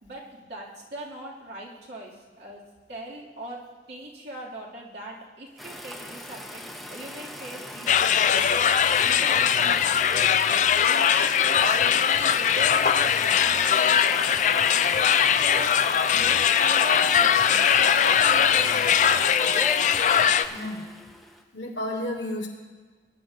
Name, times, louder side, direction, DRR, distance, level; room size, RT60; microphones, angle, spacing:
voice 1, 0.0-2.6 2.9-3.6 3.9-6.6 6.9-8.7 9.0-10.4 10.8-14.8 15.3-15.7 16.1-19.2, right 1 dB, 65° right, -5 dB, 2.5 m, -40 dB
sound 1, 5.6-21.4, equal, ahead, 0.8 m, -39 dB
sound 2, 7.9-20.4, left 8 dB, 45° left, 0.3 m, -21 dB
voice 2, 20.5-20.9 21.5-22.5, left 1 dB, 90° left, -2 dB, 2.2 m, -31 dB
21.0 x 10.5 x 2.7 m, 1.4 s
head